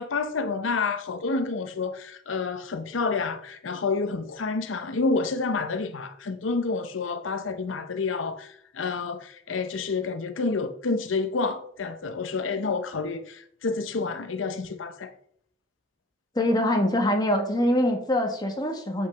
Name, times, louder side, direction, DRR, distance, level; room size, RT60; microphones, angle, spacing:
voice 1, 0.0-15.1, left 4 dB, 80° left, 0.6 m, -29 dB
voice 2, 16.3-19.1, left 1 dB, 20° left, 1.5 m, -24 dB
7.9 x 5.7 x 5.6 m
head